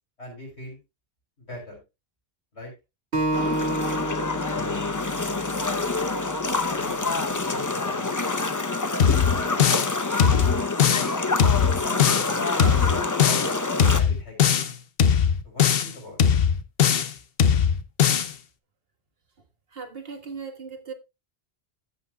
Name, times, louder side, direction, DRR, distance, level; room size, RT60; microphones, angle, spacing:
voice 1, 0.2-0.8 1.4-1.8 2.5-2.7 4.5-5.0 6.5-8.1 9.2-9.7 11.4-13.5 13.9-14.6 15.4-16.2, left 1 dB, 90° left, 6.1 m, -41 dB
Acoustic guitar, 3.1-6.4, right 1 dB, 85° right, 2.2 m, -30 dB
sound 1, 3.3-14.0, left 3 dB, 20° left, 0.6 m, -27 dB
sound 2, 9.0-9.9 10.2-11.1 11.4-12.3 12.6-13.5 13.8-14.7 15.0-15.9 16.2-17.1 17.4-18.3, left 8 dB, 65° left, 1.0 m, -20 dB
voice 2, 19.7-20.9, right 5 dB, 65° right, 1.9 m, -37 dB
15.0 x 7.9 x 2.3 m
omnidirectional pair, 1.1 m